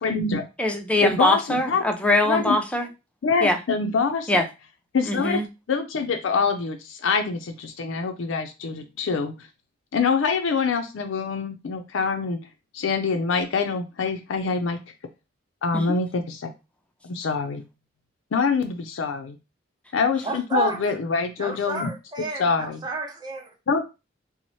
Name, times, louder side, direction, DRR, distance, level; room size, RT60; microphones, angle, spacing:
voice 1, 0.0-0.4 1.0-1.4 1.7-1.8 2.2-2.6 3.2-4.4 4.9-5.4 5.7-9.5 9.9-12.4 12.7-14.8 15.6-16.5 17.0-17.6 18.3-19.4 19.9-21.9 22.4-22.8 23.7-23.8, left 5 dB, 70° left, 5 dB, 0.5 m, -25 dB
voice 2, 0.6-2.9 3.4-3.6 4.3-4.4 5.0-5.5 15.7-15.8, left 1 dB, 5° left, 4 dB, 0.5 m, -22 dB
voice 3, 20.2-20.8 21.4-23.5, right 3 dB, 20° right, 0 dB, 0.8 m, -30 dB
3.0 x 2.0 x 4.1 m, 0.27 s
head